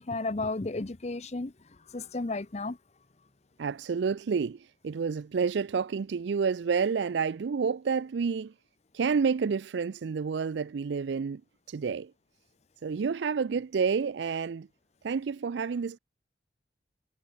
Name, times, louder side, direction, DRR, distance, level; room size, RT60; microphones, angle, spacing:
voice 1, 0.0-2.8, left 3 dB, 35° left, 0.7 m, -33 dB
voice 2, 3.6-8.5 8.9-11.4 11.7-12.1 12.8-14.7 15.0-16.0, right 5 dB, 70° right, 0.4 m, -29 dB
head